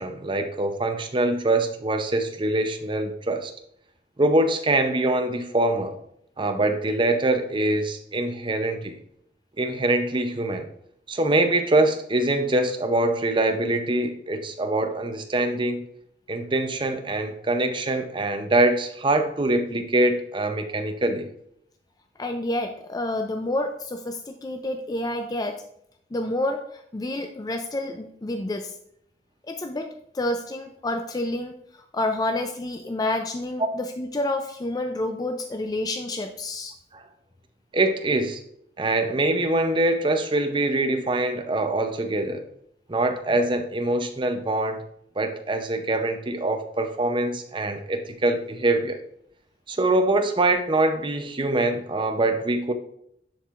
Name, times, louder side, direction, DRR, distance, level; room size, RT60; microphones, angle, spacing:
voice 1, 0.0-3.5 4.2-6.0 6.4-9.0 9.6-10.7 11.1-15.8 16.3-21.3 33.6-33.7 36.9-37.0 37.7-38.4 38.8-42.4 42.9-44.8 45.2-49.0 49.7-52.7, right 2 dB, 30° right, 6 dB, 0.6 m, -24 dB
voice 2, 22.2-25.6 26.1-28.7 29.5-29.9 30.1-36.7, left 1 dB, 20° left, 5 dB, 0.4 m, -29 dB
10.5 x 4.6 x 2.5 m, 0.71 s
head